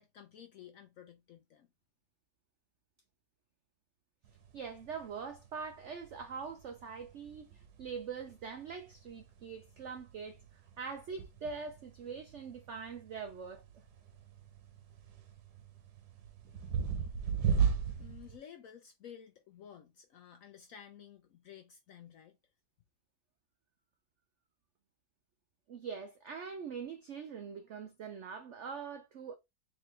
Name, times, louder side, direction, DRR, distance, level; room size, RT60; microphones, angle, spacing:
voice 1, 0.0-1.7 18.0-22.4, left 9 dB, 70° left, 0.8 m, -53 dB
sound 1, 4.2-18.4, right 7 dB, 65° right, 1.4 m, -38 dB
voice 2, 4.5-10.4 10.8-13.6 25.7-29.3, right 5 dB, 85° right, 0.6 m, -43 dB
3.9 x 3.4 x 3.2 m
omnidirectional pair, 1.9 m